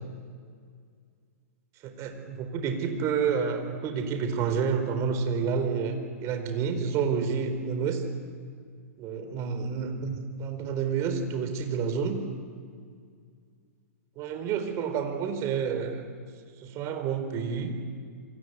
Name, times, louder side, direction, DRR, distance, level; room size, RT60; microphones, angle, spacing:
voice 1, 1.8-8.0 9.0-12.2 14.2-16.0 16.6-17.7, right 6 dB, 35° right, 7 dB, 4.4 m, -29 dB
29.0 x 24.0 x 8.2 m, 2.1 s
figure-of-eight pair, 105°, 8 cm